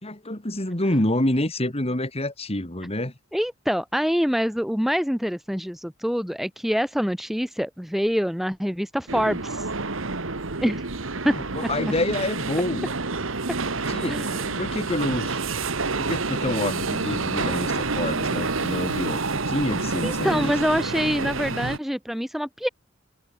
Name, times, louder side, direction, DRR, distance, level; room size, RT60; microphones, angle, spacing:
voice 1, 0.0-3.1 11.3-12.9 13.9-15.4 16.0-20.5, left 1 dB, 30° left, 3.3 m, -27 dB
voice 2, 3.3-9.7 10.6-10.8 11.2-11.4 14.1-14.3 20.0-22.7, equal, ahead, 1.9 m, -25 dB
sound 1, 9.1-21.8, right 3 dB, 90° right, 2.0 m, -28 dB
head